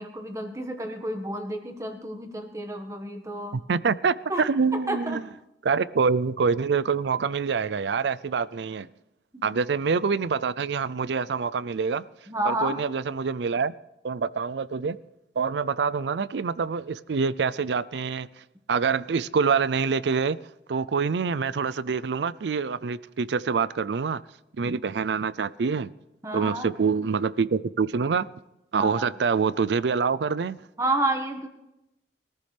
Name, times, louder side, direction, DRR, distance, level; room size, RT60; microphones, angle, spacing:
voice 1, 0.0-3.6 4.3-4.4 4.7-5.2 9.3-9.6 12.3-12.8 26.2-26.7 28.7-29.1 30.8-31.5, right 1 dB, 15° right, 1.5 m, -30 dB
voice 2, 3.5-5.2 5.6-8.9 9.4-12.0 12.5-13.7 14.0-15.0 15.4-18.3 18.7-20.4 20.7-24.2 24.6-25.9 26.3-28.3 28.7-30.6, right 5 dB, 80° right, 0.5 m, -26 dB
23.0 x 14.0 x 3.4 m
head